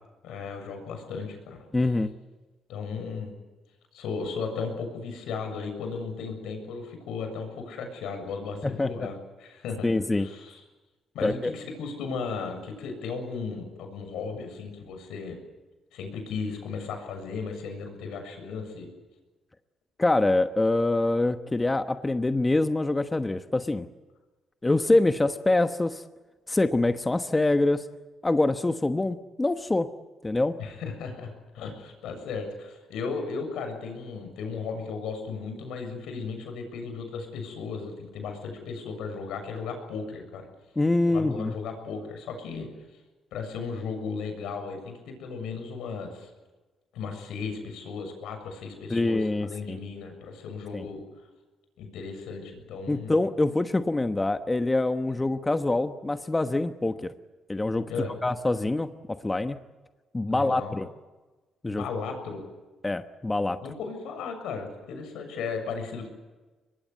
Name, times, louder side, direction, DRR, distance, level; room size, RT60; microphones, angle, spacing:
voice 1, 0.2-1.7 2.7-3.3 3.9-9.9 10.2-10.6 11.1-15.4 15.9-18.9 30.6-40.5 41.1-42.7 43.3-46.3 46.9-51.0 51.8-53.2 57.9-58.1 60.3-60.8 61.7-62.4 63.6-66.1, left 5 dB, 85° left, 6 dB, 7.1 m, -35 dB
voice 2, 1.7-2.1 8.6-9.1 9.8-10.3 11.2-11.5 20.0-23.9 24.6-26.0 26.5-27.8 28.2-29.9 30.2-30.6 40.8-41.5 48.9-49.8 50.7-50.8 52.9-57.1 57.5-57.9 58.2-59.6 60.1-60.9 61.6-61.8 62.8-63.6, left 2 dB, 20° left, 9 dB, 1.1 m, -25 dB
24.0 x 22.0 x 8.4 m, 1.2 s
cardioid pair, 90°, 0 cm